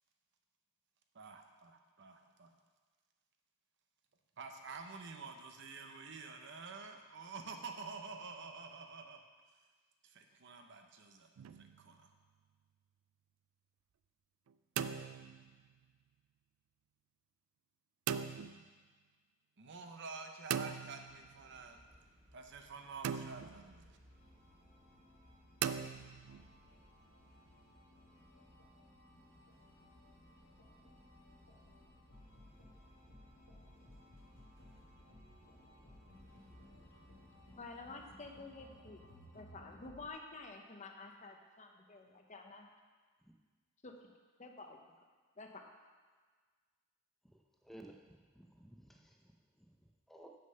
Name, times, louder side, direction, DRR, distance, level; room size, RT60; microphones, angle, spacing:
voice 1, 1.1-2.5 4.4-9.2 10.0-11.3 11.6-12.1 19.6-21.8 22.3-23.8, right 4 dB, 55° right, 4 dB, 0.8 m, -49 dB
sound 1, 11.4-11.9 14.5-15.7 18.1-18.6 20.5-21.4 23.0-23.7 25.6-26.5, right 8 dB, 70° right, 0.3 m, -40 dB
sound 2, 21.1-37.6, equal, 30° right, 1.7 m, -64 dB
sound 3, 24.1-40.1, left 1 dB, 65° left, 1.9 m, -61 dB
voice 2, 37.6-39.0 39.3-42.7 43.8-43.9 44.4-44.8 45.4-45.6, left 3 dB, 35° left, 3 dB, 0.8 m, -50 dB
voice 3, 47.2-50.4, right 1 dB, ahead, 2 dB, 0.6 m, -58 dB
7.5 x 6.5 x 5.6 m, 1.5 s
head